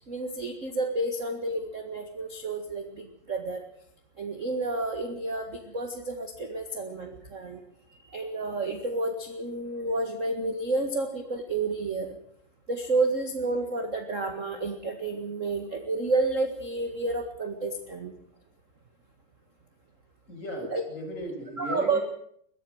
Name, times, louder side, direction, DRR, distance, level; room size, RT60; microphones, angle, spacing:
voice 1, 0.1-3.7 4.2-7.6 7.9-12.2 12.7-18.1 20.7-20.8 21.6-22.0, right 2 dB, 35° right, 5 dB, 1.3 m, -30 dB
voice 2, 20.3-22.0, equal, 20° left, 0 dB, 6.8 m, -36 dB
22.5 x 15.0 x 7.9 m, 0.68 s
omnidirectional pair, 3.9 m